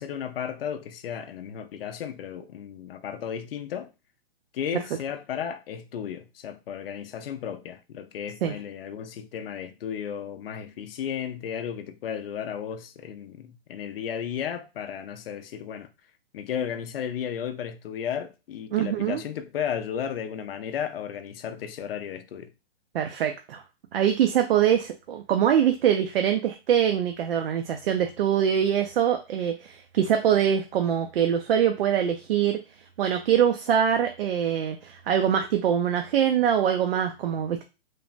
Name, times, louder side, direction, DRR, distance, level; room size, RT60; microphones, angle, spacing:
voice 1, 0.0-3.9 4.5-15.9 16.3-22.5, left 8 dB, 65° left, 0.5 m, -34 dB
voice 2, 18.7-19.2 22.9-23.6 23.9-32.6 33.0-37.6, right 9 dB, 65° right, 0.4 m, -23 dB
3.2 x 2.1 x 2.5 m
hypercardioid pair, 155°, 31 cm